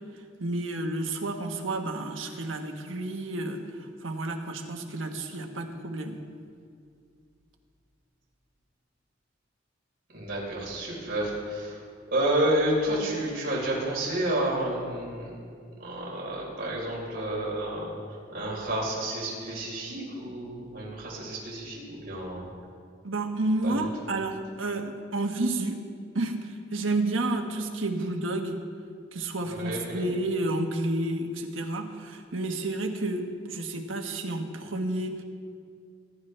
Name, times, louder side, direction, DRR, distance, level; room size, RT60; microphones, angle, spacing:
voice 1, 0.4-6.2 23.0-25.8 26.1-28.6 29.1-35.2, right 2 dB, 90° right, 4 dB, 1.4 m, -30 dB
voice 2, 10.1-11.8 12.1-15.3 15.8-17.9 18.3-22.4 23.6-23.9 29.5-30.1, right 1 dB, 50° right, -5 dB, 4.2 m, -30 dB
23.0 x 11.5 x 3.4 m, 2.2 s
head